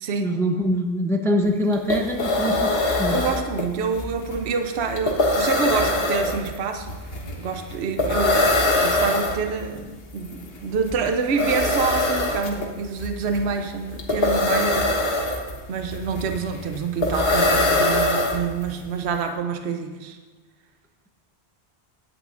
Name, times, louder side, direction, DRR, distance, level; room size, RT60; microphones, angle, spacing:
voice 1, 0.2-3.2, equal, 5° left, 2 dB, 0.7 m, -24 dB
sound 1, 1.4-1.5 1.7-18.8, left 2 dB, 65° left, 1.5 m, -23 dB
voice 2, 3.1-15.2 15.7-20.2, right 5 dB, 75° right, 5 dB, 1.0 m, -27 dB
16.5 x 10.0 x 2.5 m, 1.4 s
omnidirectional pair, 1.1 m